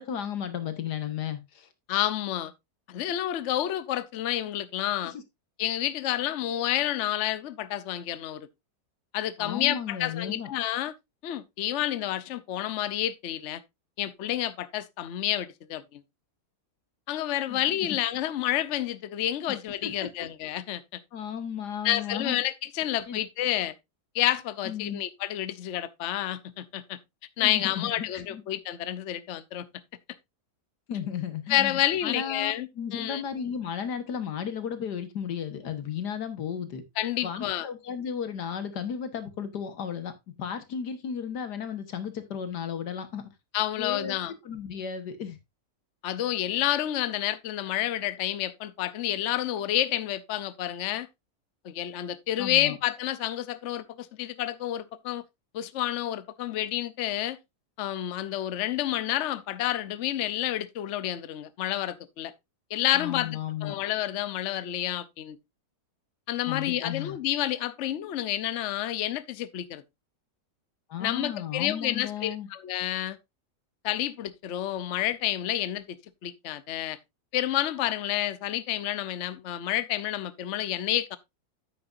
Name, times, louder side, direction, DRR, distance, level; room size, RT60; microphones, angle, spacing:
voice 1, 0.0-1.7 5.0-5.2 9.4-10.5 17.5-17.6 19.5-19.6 19.8-20.1 21.1-22.4 23.1-23.2 24.6-25.0 27.4-28.4 30.9-36.8 37.2-40.1 40.4-43.2 43.8-44.2 44.4-45.4 52.4-52.8 62.9-63.8 66.5-67.2 70.9-72.5, left 8 dB, 90° left, 1.9 m, -34 dB
voice 2, 1.9-2.5 2.9-5.1 5.6-8.5 9.1-10.9 11.2-13.6 14.0-16.0 17.1-21.0 21.8-23.7 24.1-27.0 27.4-29.7 31.5-33.2 37.0-37.7 43.5-44.3 46.0-51.1 51.6-55.2 55.5-57.4 57.8-62.3 62.7-65.4 66.3-69.8 71.0-73.2 73.8-76.0 76.2-77.0 77.3-81.2, left 13 dB, 55° left, 0.9 m, -29 dB
9.4 x 8.7 x 2.5 m
omnidirectional pair, 1.7 m